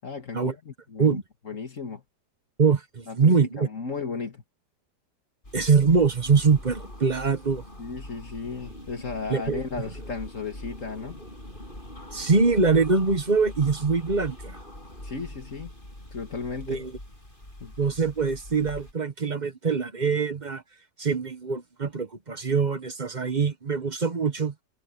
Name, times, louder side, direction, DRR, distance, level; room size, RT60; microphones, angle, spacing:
voice 1, 0.0-1.2 1.5-2.0 3.1-4.4 7.8-11.2 15.0-15.7 16.1-16.9 17.6-17.7, left 4 dB, 45° left, 2.2 m, -35 dB
voice 2, 2.6-3.7 5.5-7.6 9.3-9.8 12.1-14.6 16.7-16.9 17.8-20.6 21.0-24.5, right 5 dB, 30° right, 0.9 m, -23 dB
sound 1, 5.4-18.9, left 1 dB, 25° left, 7.8 m, -43 dB
omnidirectional pair, 2.0 m